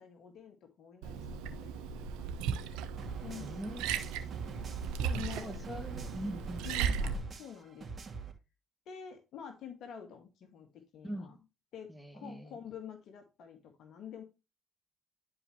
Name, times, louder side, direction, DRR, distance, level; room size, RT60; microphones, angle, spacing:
voice 1, 0.0-2.7 3.2-3.8 5.0-5.8 6.6-7.9 8.9-11.4 11.7-14.2, left 8 dB, 65° left, 2.0 m, -48 dB
Liquid, 1.0-7.2, right 7 dB, 80° right, 1.0 m, -36 dB
sound 1, 3.0-8.3, right 4 dB, 40° right, 2.4 m, -45 dB
voice 2, 3.4-3.8 5.2-6.7 11.0-11.4 11.9-12.6, equal, ahead, 2.1 m, -42 dB
11.0 x 5.0 x 3.1 m
hypercardioid pair, 60°, 0 cm